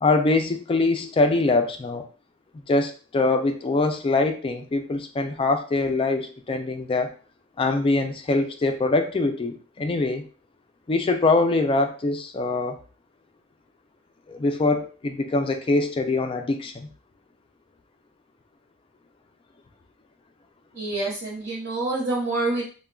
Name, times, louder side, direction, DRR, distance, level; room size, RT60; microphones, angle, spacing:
voice 1, 0.0-2.1 2.7-7.1 7.6-10.2 10.9-12.8 14.3-16.9, left 3 dB, 25° left, 6 dB, 0.3 m, -23 dB
voice 2, 20.7-22.6, right 2 dB, 60° right, -6 dB, 0.7 m, -27 dB
3.5 x 2.1 x 2.2 m, 0.39 s
head